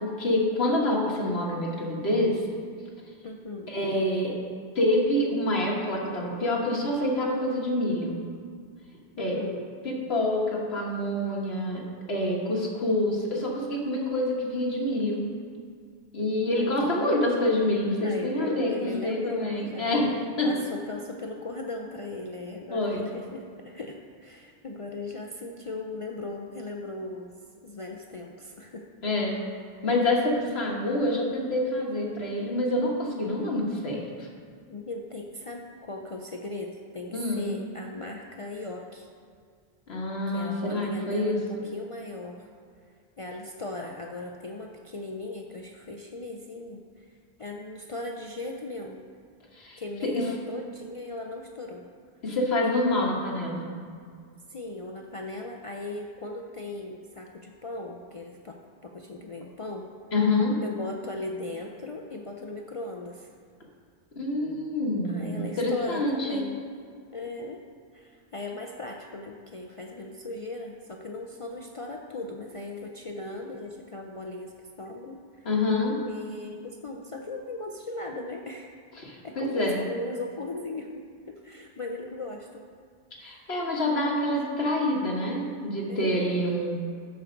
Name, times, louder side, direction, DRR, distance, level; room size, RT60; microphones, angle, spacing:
voice 1, 0.0-2.4 3.7-4.3 4.8-8.2 9.2-9.4 9.9-11.8 12.1-15.2 16.1-20.1 20.4-20.5 22.7-23.1 29.0-29.4 29.8-34.3 37.1-37.5 39.9-41.6 49.5-50.2 52.2-53.7 60.1-60.6 64.2-66.5 75.4-76.0 79.0-79.8 83.2-86.7, left 1 dB, 80° left, -2 dB, 1.8 m, -27 dB
voice 2, 3.2-3.8 9.2-9.7 16.5-17.2 18.0-20.0 20.4-28.9 29.7-29.9 34.7-39.1 40.3-42.5 43.2-47.1 47.4-49.0 49.8-51.9 54.5-59.9 60.6-63.3 65.0-66.9 67.1-67.6 67.9-74.5 74.8-75.5 76.0-78.8 79.2-82.7 83.2-83.6 85.9-86.5, left 2 dB, 40° left, 1 dB, 0.5 m, -38 dB
13.0 x 4.5 x 5.1 m, 2.1 s
omnidirectional pair, 1.0 m